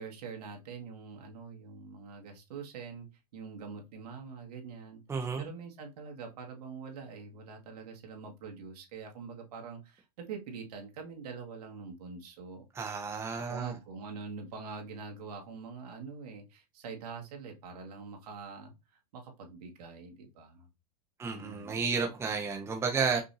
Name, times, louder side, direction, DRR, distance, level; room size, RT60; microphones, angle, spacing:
voice 1, 0.0-3.1 3.3-5.0 5.4-12.7 13.3-18.7 19.1-20.7 21.2-21.8, right 5 dB, 75° right, 1.8 m, -44 dB
voice 2, 5.1-5.5 12.7-13.7 21.2-23.2, right 5 dB, 10° right, 0.9 m, -32 dB
5.5 x 2.7 x 2.6 m
supercardioid pair, 135°, 20 cm